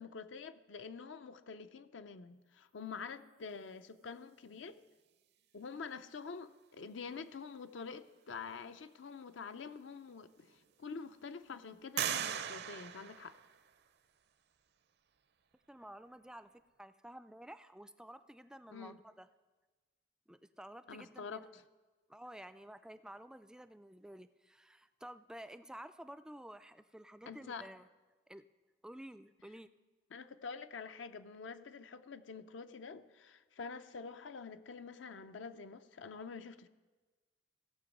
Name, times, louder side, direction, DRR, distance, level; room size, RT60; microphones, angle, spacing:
voice 1, 0.0-4.8 5.5-13.4 18.7-19.0 20.9-21.6 27.3-27.7 30.1-36.7, left 5 dB, 75° left, 10 dB, 0.5 m, -47 dB
sound 1, 9.7-9.8 10.4-11.0 12.0-13.9, right 9 dB, 60° right, 0.5 m, -39 dB
voice 2, 15.7-16.5 16.8-19.3 20.3-21.5 22.1-27.9 28.3-28.4 28.8-29.7, right 1 dB, 5° right, 12 dB, 0.3 m, -52 dB
16.5 x 7.0 x 5.3 m, 1.3 s
head